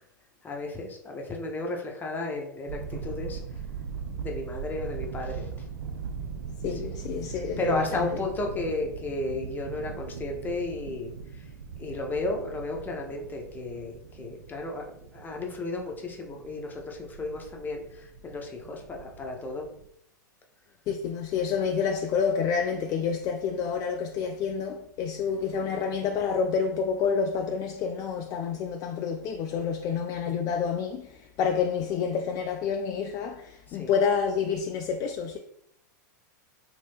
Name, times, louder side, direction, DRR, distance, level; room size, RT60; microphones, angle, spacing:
voice 1, 0.4-3.4 4.2-5.5 6.7-11.5 11.8-19.7 33.7-34.0, left 2 dB, 20° left, 0.7 m, -34 dB
sound 1, 2.7-19.9, right 6 dB, 75° right, 0.4 m, -40 dB
voice 2, 6.6-8.2 20.9-35.4, left 6 dB, 35° left, 0.3 m, -28 dB
2.9 x 2.6 x 3.4 m
hypercardioid pair, 100°, 10 cm